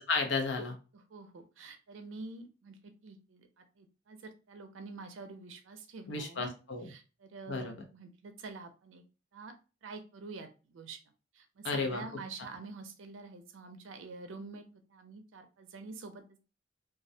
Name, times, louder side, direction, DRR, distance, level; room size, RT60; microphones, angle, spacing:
voice 1, 0.1-0.7 6.1-6.9 7.5-7.7 11.6-12.0, left 4 dB, 65° left, 4 dB, 0.6 m, -32 dB
voice 2, 0.9-6.5 6.9-9.0 9.3-9.5 9.8-11.0 11.3-16.4, right 3 dB, 80° right, 7 dB, 0.4 m, -47 dB
2.3 x 2.1 x 2.6 m, 0.33 s
head